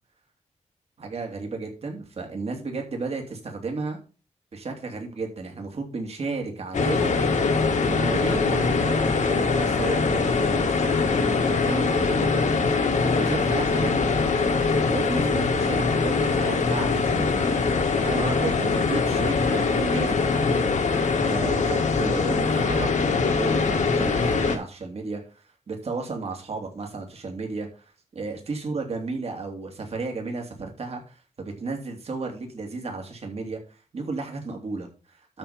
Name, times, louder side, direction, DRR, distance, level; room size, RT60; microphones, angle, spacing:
voice 1, 1.0-4.0 4.5-7.1 7.8-12.7 13.0-14.2 14.9-17.5 18.0-20.7 21.2-25.2 25.7-35.4, right 3 dB, 55° right, 2 dB, 2.8 m, -33 dB
sound 1, 6.7-24.6, left 4 dB, 75° left, 1.7 m, -23 dB
12.5 x 4.4 x 5.1 m, 0.35 s
wide cardioid pair, 105°, 13 cm